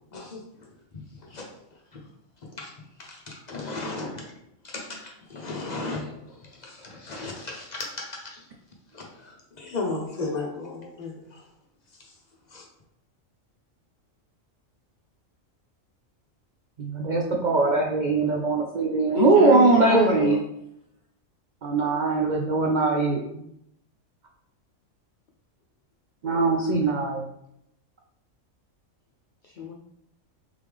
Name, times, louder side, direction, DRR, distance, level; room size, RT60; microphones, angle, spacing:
voice 1, 0.1-0.7 0.9-1.5 1.9-2.0 2.4-2.7 3.0-4.3 4.6-8.5 8.9-11.5 12.0-12.1 12.5-12.7, left 3 dB, 45° left, 0 dB, 0.6 m, -36 dB
voice 2, 16.8-20.4 21.6-23.2 26.2-27.2, right 3 dB, 80° right, 0 dB, 0.4 m, -21 dB
voice 3, 19.1-20.4 29.4-29.7, left 6 dB, 90° left, -2 dB, 0.4 m, -28 dB
3.6 x 3.3 x 3.4 m, 0.79 s
omnidirectional pair, 1.4 m